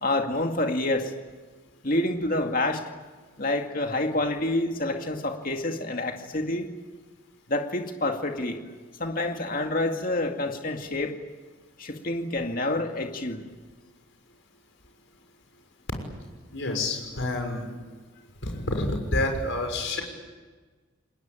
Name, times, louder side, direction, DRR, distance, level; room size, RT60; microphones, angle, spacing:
voice 1, 0.0-1.1 1.8-2.9 3.4-6.7 7.5-8.6 9.0-11.1 11.8-13.5, left 2 dB, 40° left, 4 dB, 2.2 m, -28 dB
voice 2, 16.5-17.7 18.4-20.0, left 2 dB, 60° left, 3 dB, 6.3 m, -28 dB
29.5 x 21.0 x 9.0 m, 1.4 s
head